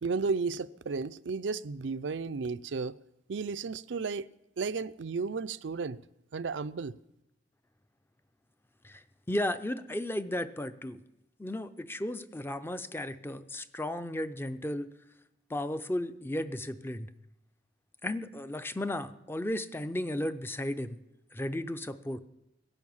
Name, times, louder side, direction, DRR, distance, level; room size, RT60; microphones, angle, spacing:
voice 1, 0.0-3.0 3.3-4.3 4.6-6.0 6.3-7.0, right 4 dB, 75° right, 0.5 m, -33 dB
voice 2, 8.8-11.0 11.4-14.9 15.5-17.1 18.0-21.0 21.3-22.2, left 1 dB, 10° left, 0.5 m, -34 dB
18.0 x 11.0 x 7.2 m
head